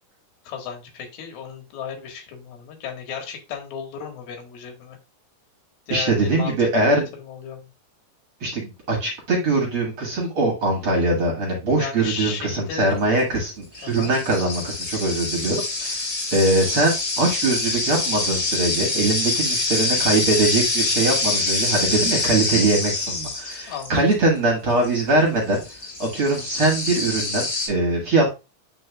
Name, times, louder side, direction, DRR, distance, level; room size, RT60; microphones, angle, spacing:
voice 1, 0.4-5.0 5.9-7.7 11.8-13.0 13.8-14.1 23.7-24.0, left 7 dB, 85° left, 3 dB, 3.4 m, -34 dB
voice 2, 5.9-7.1 8.4-16.0 16.3-25.6 26.0-28.3, right 2 dB, 45° right, 0 dB, 2.0 m, -22 dB
sound 1, 13.0-13.2 13.7-24.1 24.8-24.9 25.5-27.7, left 3 dB, 20° left, 3.7 m, -25 dB
9.7 x 4.5 x 2.3 m, 0.28 s
omnidirectional pair, 4.2 m